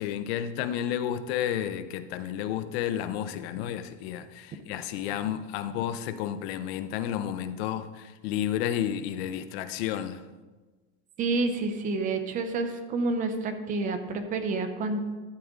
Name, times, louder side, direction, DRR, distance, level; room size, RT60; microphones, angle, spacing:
voice 1, 0.0-10.2, left 10 dB, 55° left, 0.7 m, -31 dB
voice 2, 11.2-15.0, right 3 dB, 20° right, 0.7 m, -29 dB
13.0 x 8.4 x 3.7 m
supercardioid pair, 170°, 38 cm